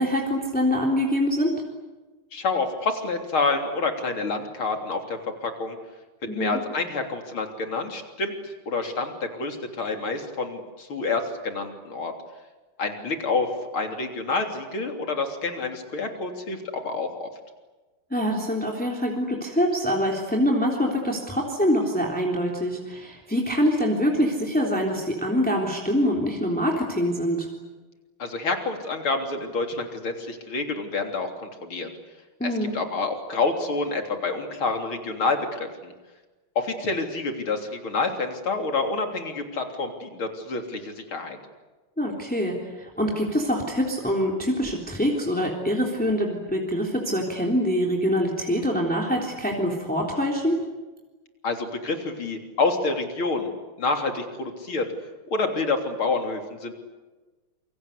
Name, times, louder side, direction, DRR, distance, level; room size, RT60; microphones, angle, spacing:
voice 1, 0.0-1.5 6.3-6.6 18.1-27.5 32.4-32.8 42.0-50.6, equal, 5° left, -1 dB, 3.5 m, -24 dB
voice 2, 2.3-5.8 6.3-12.1 12.8-13.5 13.7-17.3 28.2-31.9 32.4-35.9 36.6-41.4 51.4-54.9 55.3-56.7, left 3 dB, 75° left, 4 dB, 4.1 m, -28 dB
28.0 x 24.5 x 8.4 m, 1.2 s
omnidirectional pair, 2.3 m